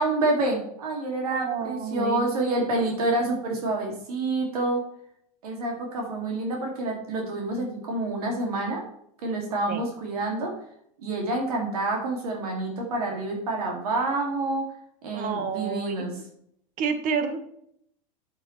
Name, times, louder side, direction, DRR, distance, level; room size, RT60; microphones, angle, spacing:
voice 1, 0.0-4.8 5.4-8.8 9.2-10.5 11.0-14.6 15.0-16.2, right 2 dB, 85° right, 0 dB, 2.5 m, -28 dB
voice 2, 1.3-2.8 9.7-9.8 15.1-16.2 16.8-17.4, right 6 dB, 45° right, 8 dB, 1.4 m, -30 dB
8.1 x 7.7 x 3.2 m, 0.70 s
hypercardioid pair, 110°, 19 cm